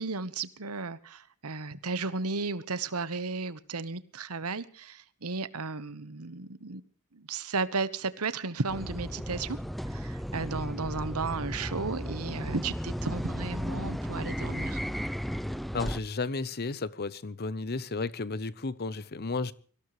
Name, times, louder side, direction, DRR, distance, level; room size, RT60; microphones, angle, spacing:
voice 1, 0.0-6.8 7.1-9.6 9.8-14.8, right 4 dB, 75° right, 1.2 m, -34 dB
sound 1, 8.7-16.0, equal, ahead, 0.6 m, -34 dB
voice 2, 15.7-19.5, left 3 dB, 45° left, 0.9 m, -33 dB
24.5 x 16.5 x 3.2 m
head